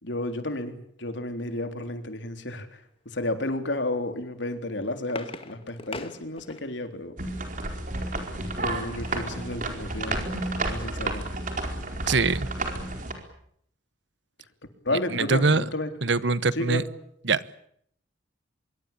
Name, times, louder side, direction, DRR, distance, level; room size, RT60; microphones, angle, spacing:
voice 1, 0.0-2.8 3.1-7.2 8.6-10.3 10.7-11.2 14.8-15.9 16.5-16.9, left 1 dB, 75° left, 7 dB, 3.7 m, -32 dB
sound 1, 4.5-6.9 8.5-9.4 9.9-10.0 10.2-10.5, left 3 dB, 30° left, 1.9 m, -42 dB
sound 2, 7.2-13.1, right 2 dB, 45° right, 4.6 m, -31 dB
voice 2, 12.1-12.5 15.1-15.6 16.0-16.8 17.2-17.4, right 4 dB, 70° right, 17 dB, 1.1 m, -23 dB
25.5 x 23.0 x 8.7 m, 0.69 s
head